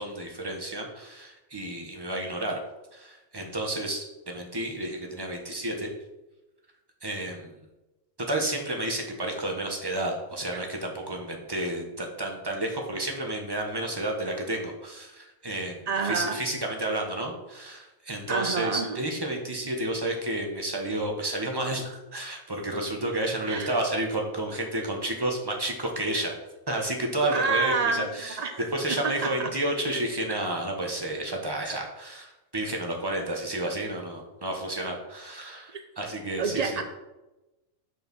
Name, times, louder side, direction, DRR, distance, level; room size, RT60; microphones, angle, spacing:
voice 1, 0.0-2.6 2.9-5.9 7.0-7.5 8.3-26.4 26.7-36.8, right 1 dB, 20° right, 1 dB, 1.1 m, -31 dB
voice 2, 15.9-16.4 18.3-19.1 23.4-23.7 27.3-28.6 29.0-29.5 36.4-36.8, right 4 dB, 65° right, 6 dB, 0.4 m, -28 dB
6.2 x 4.8 x 6.1 m, 1.0 s
omnidirectional pair, 1.4 m